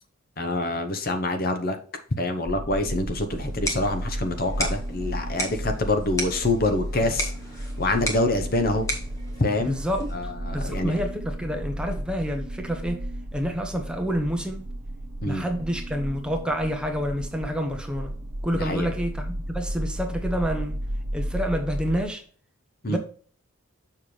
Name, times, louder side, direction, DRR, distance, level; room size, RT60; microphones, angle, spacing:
voice 1, 0.4-1.8 2.2-7.3 7.8-8.9 9.4-9.8 10.1-10.9 15.2-15.4 18.5-18.9 22.8-23.0, left 2 dB, 45° left, 0.9 m, -26 dB
sound 1, 2.4-22.0, equal, 75° right, 1.2 m, -33 dB
sound 2, 3.3-10.3, equal, 15° left, 1.5 m, -35 dB
voice 2, 9.6-13.0 13.3-14.7 15.2-18.1 18.4-20.8 21.1-22.2 22.9-23.0, equal, 5° right, 0.9 m, -28 dB
7.0 x 5.7 x 3.3 m
head